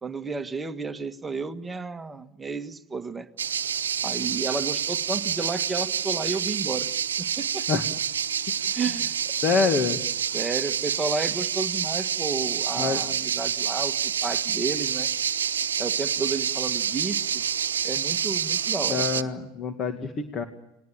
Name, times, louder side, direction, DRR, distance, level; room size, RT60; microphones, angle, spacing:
voice 1, 0.0-3.3 4.0-6.9 7.2-7.7 8.7-9.1 10.3-15.1 15.8-17.4 17.8-19.3, right 4 dB, 15° right, 9 dB, 1.6 m, -32 dB
sound 1, 3.4-19.2, right 8 dB, 80° right, 1.0 m, -28 dB
voice 2, 9.4-10.0 12.8-13.0 18.9-20.4, left 5 dB, 35° left, 7 dB, 2.1 m, -26 dB
29.0 x 20.5 x 8.9 m, 0.90 s
hypercardioid pair, 90°, 0 cm